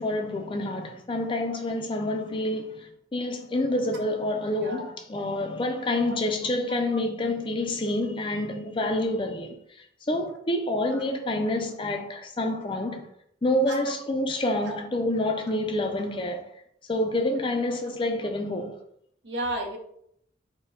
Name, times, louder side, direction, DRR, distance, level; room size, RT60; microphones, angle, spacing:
voice 1, 0.0-13.1 13.4-16.4 16.9-18.8, left 1 dB, 25° left, 0.4 m, -28 dB
voice 2, 4.6-4.9 10.9-11.0 13.7-13.8 14.6-14.8 19.2-19.8, right 1 dB, 75° right, 0.8 m, -32 dB
4.5 x 2.2 x 3.5 m
head